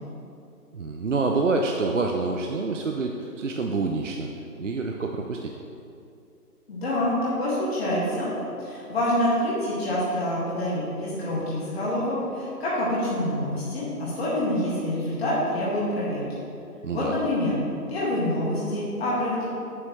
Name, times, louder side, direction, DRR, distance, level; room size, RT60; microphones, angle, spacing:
voice 1, 0.7-4.3 4.6-5.6 16.8-17.2, right 3 dB, 55° right, 2 dB, 0.5 m, -27 dB
voice 2, 6.7-8.3 8.6-16.2 16.9-17.5 17.9-19.5, left 1 dB, 40° left, -8 dB, 2.1 m, -26 dB
8.5 x 8.0 x 3.2 m, 2.6 s
figure-of-eight pair, 155°, 47 cm